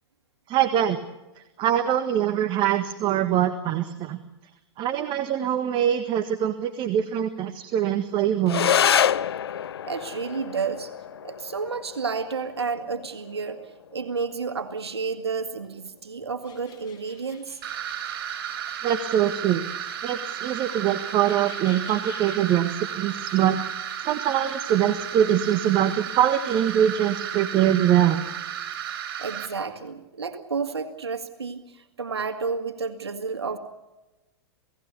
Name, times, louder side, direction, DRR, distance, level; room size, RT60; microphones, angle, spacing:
voice 1, 0.5-1.0 1.6-4.2 4.8-8.7 18.5-19.6 20.0-28.2, right 10 dB, 35° right, 10 dB, 1.6 m, -23 dB
sound 1, 8.4-17.4, left 9 dB, 75° left, 0.7 m, -29 dB
voice 2, 9.8-10.9 11.2-17.6 28.9-33.6, right 5 dB, 85° right, 7 dB, 2.1 m, -31 dB
sound 2, 16.4-27.4, left 7 dB, 30° left, 6.8 m, -50 dB
sound 3, 17.6-29.5, right 10 dB, 60° right, 5.5 m, -33 dB
28.5 x 17.5 x 6.9 m, 1.0 s
hypercardioid pair, 105°, 13 cm